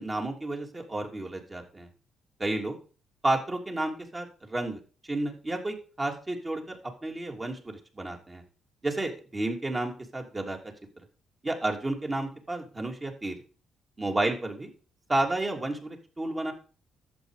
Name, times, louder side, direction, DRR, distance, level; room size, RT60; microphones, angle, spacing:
voice 1, 0.0-1.9 2.4-2.8 3.2-8.4 8.8-10.6 11.4-13.4 14.0-14.7 15.1-16.5, right 2 dB, 25° right, 2 dB, 3.1 m, -31 dB
11.5 x 7.9 x 5.1 m, 0.38 s
cardioid pair, 90°, 0 cm